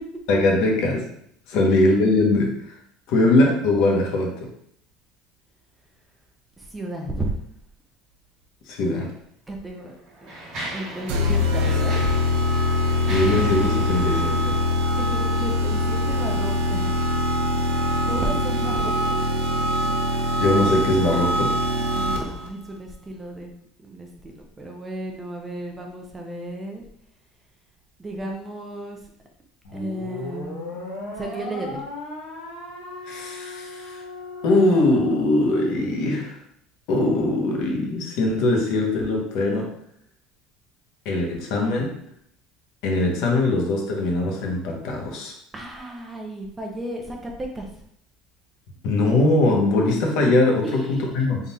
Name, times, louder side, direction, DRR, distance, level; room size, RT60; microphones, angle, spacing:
voice 1, 0.3-1.1 1.5-2.8 3.1-4.5 8.7-9.1 13.1-14.6 20.4-21.5 33.1-34.0 34.4-36.4 36.9-39.7 41.0-41.9 42.8-45.3 48.8-51.4, left 2 dB, 55° left, 0 dB, 1.0 m, -21 dB
voice 2, 6.6-7.3 9.5-10.0 10.2-10.3 10.7-12.1 15.0-16.9 18.1-19.2 21.9-23.5 23.8-26.8 28.0-29.0 29.7-30.8 31.2-31.8 45.5-47.7 50.6-51.3, right 1 dB, 10° right, 1 dB, 0.5 m, -33 dB
Mechanisms, 8.9-9.0 9.8-15.5, right 1 dB, 40° right, 1.6 m, -38 dB
sound 1, 11.1-22.5, left 1 dB, 80° right, 0.7 m, -23 dB
sound 2, 29.6-36.1, left 2 dB, 90° left, 1.5 m, -36 dB
3.7 x 2.4 x 4.1 m, 0.69 s
cardioid pair, 165°, 0 cm